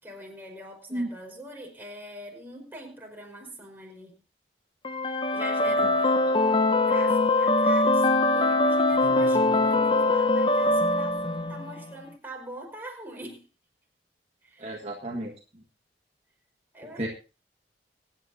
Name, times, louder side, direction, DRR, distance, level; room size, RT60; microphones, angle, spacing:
voice 1, 0.0-4.2 5.3-13.5 14.4-14.8 16.7-17.1, right 1 dB, 10° right, 0 dB, 4.9 m, -43 dB
sound 1, 4.8-11.8, left 2 dB, 30° left, 0.8 m, -22 dB
voice 2, 14.6-15.3 17.0-17.1, right 1 dB, 35° right, -1 dB, 1.7 m, -32 dB
24.5 x 9.6 x 2.8 m, 0.32 s
head